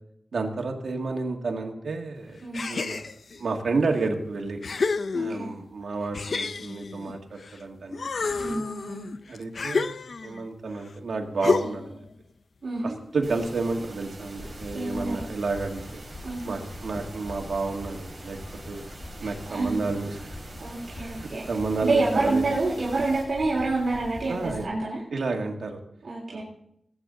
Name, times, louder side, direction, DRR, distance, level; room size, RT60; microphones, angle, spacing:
voice 1, 0.3-2.4 2.7-3.0 3.4-4.6 5.1-8.1 8.4-8.7 9.3-12.1 12.8-16.0 16.4-18.4 18.7-18.9 19.2-20.4 21.0-22.4 24.3-24.6 25.1-25.8 26.3-26.4, right 3 dB, 85° right, 2 dB, 1.8 m, -31 dB
sound 1, 2.5-3.4 4.0-4.1 4.6-5.6 6.1-7.6 7.9-10.4 11.4-12.0, left 4 dB, 65° left, 0.5 m, -29 dB
voice 2, 5.1-5.5 8.4-9.1 12.6-13.0 14.7-15.1 16.2-16.4 19.2-19.8 20.6-21.4 21.8-24.4 24.6-25.0 26.0-26.4, right 3 dB, 60° right, -5 dB, 3.3 m, -27 dB
sound 2, 13.2-23.2, right 2 dB, 35° right, 4.4 m, -45 dB
sound 3, 14.2-24.7, left 2 dB, 40° left, 1.4 m, -43 dB
19.5 x 9.0 x 3.9 m, 0.75 s
wide cardioid pair, 130°, 0 cm